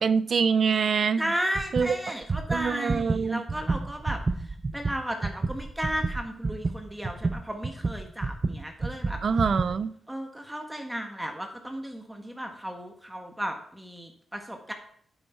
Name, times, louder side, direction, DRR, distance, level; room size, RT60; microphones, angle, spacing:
voice 1, 0.0-1.3 1.7-2.0 2.5-3.4 9.2-9.9, right 6 dB, 60° right, 0.4 m, -25 dB
voice 2, 1.2-9.2 10.1-14.7, equal, 10° right, 1.5 m, -34 dB
sound 1, 1.6-1.9 2.2-9.8, right 3 dB, 35° right, 0.8 m, -30 dB
9.7 x 8.0 x 4.5 m
cardioid pair, 75°, 0 cm